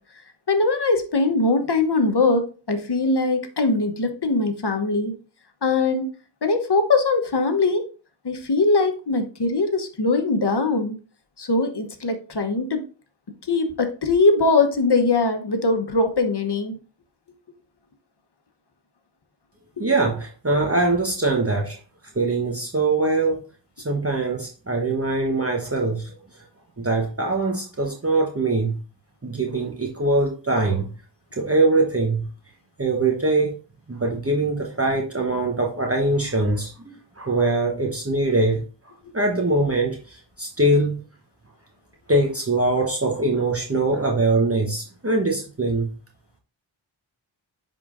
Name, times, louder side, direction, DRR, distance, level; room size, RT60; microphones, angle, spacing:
voice 1, 0.5-5.1 5.6-6.1 6.4-7.9 8.2-10.9 11.4-12.8 13.5-16.7 19.8-19.9, left 3 dB, 55° left, 1.0 m, -21 dB
voice 2, 19.8-21.8 22.1-23.4 23.8-26.1 26.8-28.8 29.2-30.9 31.3-32.3 32.8-33.5 33.9-38.6 39.1-41.0 42.1-45.9, right 2 dB, 30° right, 1.0 m, -22 dB
9.9 x 3.8 x 2.5 m
wide cardioid pair, 45°, 47 cm